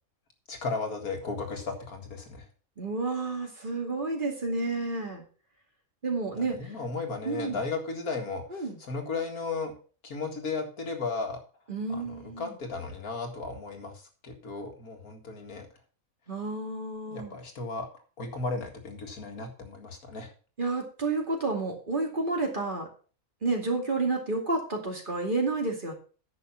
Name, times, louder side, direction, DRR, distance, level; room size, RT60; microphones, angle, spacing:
voice 1, 0.5-2.5 6.5-9.7 10.0-11.4 11.9-15.7 17.1-20.3, left 4 dB, 90° left, 3 dB, 2.4 m, -35 dB
voice 2, 2.8-5.2 6.0-6.7 7.2-7.6 8.5-8.8 11.7-12.6 16.3-17.3 20.6-22.9 23.4-25.9, right 3 dB, 35° right, 1 dB, 2.5 m, -30 dB
9.7 x 6.4 x 5.8 m, 0.39 s
omnidirectional pair, 1.5 m